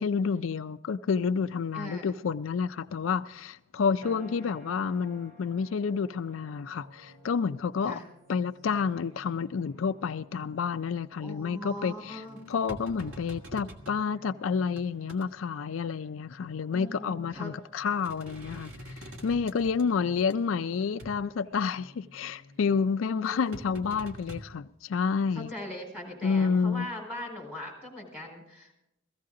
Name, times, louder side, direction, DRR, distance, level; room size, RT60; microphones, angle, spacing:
voice 1, 0.0-8.0 8.3-12.2 12.5-25.5 26.2-26.9, left 5 dB, 75° left, 0.4 m, -29 dB
voice 2, 1.7-2.2 7.8-8.0 11.2-12.4 16.7-17.5 23.1-23.7 25.3-28.7, equal, 10° right, 4.4 m, -40 dB
sound 1, 4.0-16.4, right 1 dB, 45° right, 2.7 m, -56 dB
sound 2, 6.5-22.8, left 1 dB, 70° right, 2.1 m, -56 dB
sound 3, 11.8-14.0 14.5-15.3 16.7-16.9 17.3-17.5 17.9-20.3 21.0-21.2 23.2-24.4, equal, 90° right, 1.7 m, -45 dB
16.5 x 15.0 x 3.8 m
head